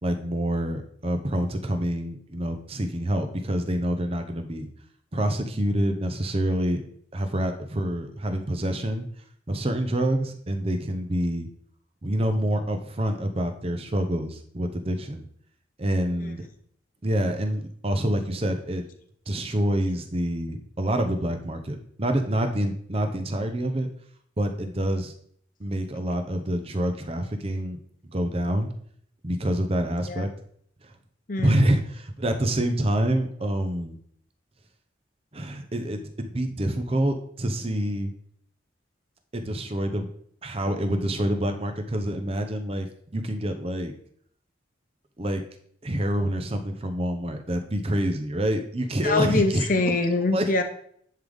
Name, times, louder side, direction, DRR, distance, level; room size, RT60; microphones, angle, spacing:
voice 1, 0.0-4.7 5.1-6.8 7.1-9.1 9.5-11.5 12.0-15.3 15.8-16.5 17.0-18.8 19.3-23.9 24.4-25.1 25.6-28.7 29.2-30.3 31.4-34.0 35.3-38.1 39.3-40.1 40.4-42.9 43.1-43.9 45.2-45.4 45.8-49.9 50.3-50.5, right 1 dB, 30° right, 6 dB, 0.8 m, -27 dB
voice 2, 49.0-50.6, left 2 dB, 45° left, 6 dB, 0.8 m, -24 dB
10.5 x 3.9 x 3.5 m, 0.63 s
head